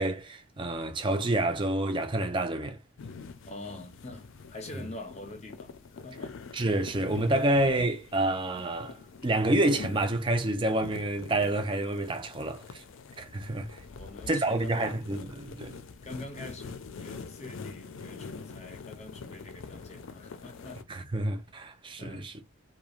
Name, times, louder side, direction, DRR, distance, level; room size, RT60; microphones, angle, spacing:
voice 1, 0.0-2.8 6.5-9.0 9.2-12.8 13.2-13.8 14.3-15.7 20.9-22.3, right 1 dB, 25° right, 0.4 m, -28 dB
sound 1, 3.0-20.8, left 4 dB, 70° left, 0.4 m, -45 dB
voice 2, 3.5-6.4 14.0-15.0 16.0-20.8 22.0-22.3, left 2 dB, 30° left, 0.8 m, -45 dB
3.1 x 2.2 x 2.4 m
head